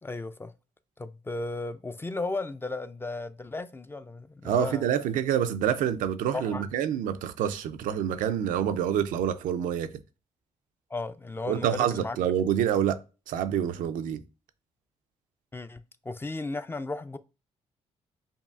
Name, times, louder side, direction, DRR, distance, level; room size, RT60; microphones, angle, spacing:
voice 1, 0.0-0.5 1.0-4.9 6.3-6.7 10.9-12.2 15.5-17.2, left 3 dB, 15° left, 0.3 m, -35 dB
voice 2, 4.4-9.9 11.5-13.0 13.3-14.2, right 9 dB, 80° right, 0.4 m, -27 dB
5.3 x 2.4 x 2.4 m
supercardioid pair, 65°, 14 cm